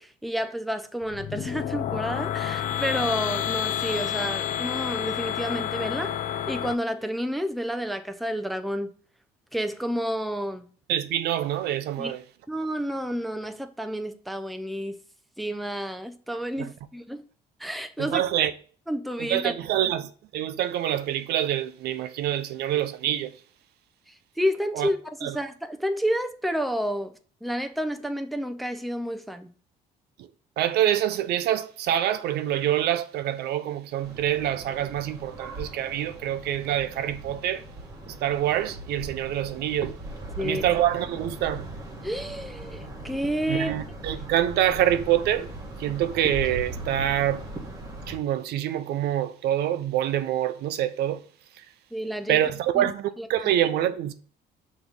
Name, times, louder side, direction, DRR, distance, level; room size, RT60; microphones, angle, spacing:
voice 1, 0.0-6.2 6.5-8.9 9.5-10.7 12.0-12.1 12.5-15.0 15.4-17.2 17.6-18.2 18.9-19.5 19.8-19.9 24.1-27.1 27.4-29.5 40.4-40.6 42.0-43.7 51.9-52.4 52.7-52.9 53.2-53.5, equal, ahead, 0.6 m, -30 dB
sound 1, 1.0-6.7, left 10 dB, 50° left, 0.5 m, -29 dB
voice 2, 10.9-12.2 16.6-16.7 18.0-18.5 19.2-23.3 24.7-24.9 25.2-25.3 30.6-37.6 38.1-39.9 40.4-41.6 43.5-45.5 45.8-47.4 48.1-51.2 52.3-54.1, right 11 dB, 75° right, 0.6 m, -26 dB
sound 2, 34.0-48.2, right 1 dB, 20° right, 1.5 m, -39 dB
6.1 x 3.1 x 5.3 m
cardioid pair, 110°, 17 cm